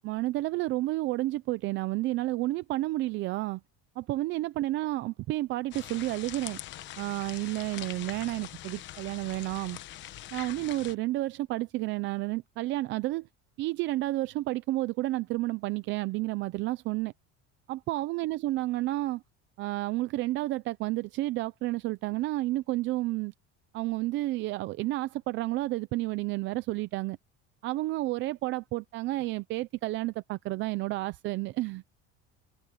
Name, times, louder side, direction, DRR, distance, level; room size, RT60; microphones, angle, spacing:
voice 1, 0.0-3.6 4.0-6.6 7.0-9.8 10.3-13.3 13.6-17.1 17.7-19.2 19.6-23.3 23.7-27.2 27.6-31.8, right 18 dB, 40° right, 0.5 m, -31 dB
sound 1, 5.7-10.9, left 13 dB, 40° left, 1.0 m, -43 dB
cardioid pair, 180°, 30 cm